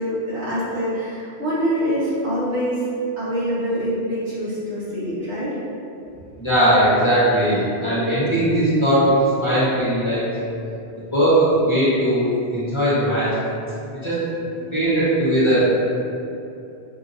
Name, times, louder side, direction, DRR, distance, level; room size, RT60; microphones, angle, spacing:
voice 1, 0.0-2.8 3.2-5.6, equal, 70° right, -11 dB, 1.7 m, -25 dB
voice 2, 6.4-10.3 11.1-13.4 14.0-14.2 14.7-15.7, right 1 dB, 30° left, -11 dB, 1.0 m, -19 dB
5.5 x 2.7 x 2.6 m, 2.7 s
omnidirectional pair, 1.1 m